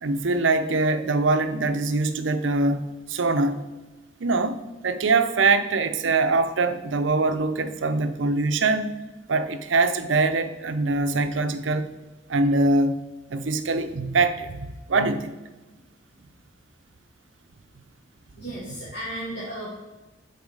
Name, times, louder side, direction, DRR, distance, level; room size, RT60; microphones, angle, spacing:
voice 1, 0.0-3.7 4.2-8.9 9.3-11.9 12.3-13.0 13.3-15.3, right 3 dB, 80° right, 9 dB, 0.6 m, -23 dB
voice 2, 18.4-19.7, right 1 dB, 60° left, -10 dB, 2.4 m, -34 dB
7.4 x 4.3 x 4.7 m, 1.2 s
head